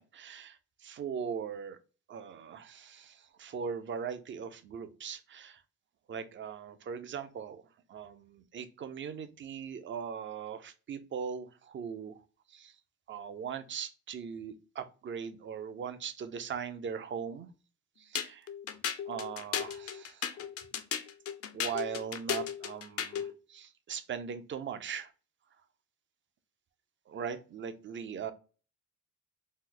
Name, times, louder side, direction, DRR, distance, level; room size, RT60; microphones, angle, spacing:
voice 1, 0.0-1.8 2.1-5.6 6.1-7.6 7.9-12.2 12.5-12.8 13.1-17.5 18.0-18.5 19.1-20.5 21.5-25.1 27.1-28.3, right 7 dB, 40° right, 10 dB, 0.5 m, -40 dB
sound 1, 18.1-23.3, left 8 dB, 50° left, 0.5 m, -35 dB
3.1 x 2.0 x 3.7 m, 0.35 s
cardioid pair, 90°, 30 cm